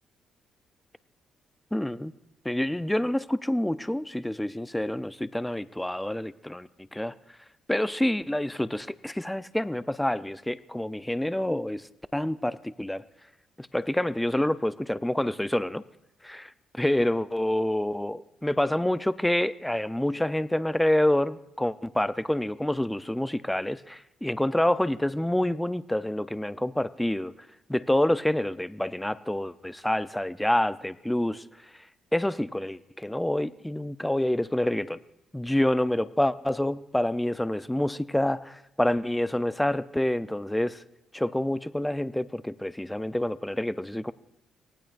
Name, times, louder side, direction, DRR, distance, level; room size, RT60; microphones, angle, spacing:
voice 1, 1.7-2.1 2.4-7.1 7.7-11.9 12.1-13.0 13.6-15.8 16.2-27.3 27.7-31.7 32.1-35.0 35.3-40.8 41.1-44.1, left 1 dB, 5° left, 14 dB, 0.5 m, -27 dB
24.5 x 18.5 x 2.6 m, 0.88 s
cardioid pair, 90°, 0 cm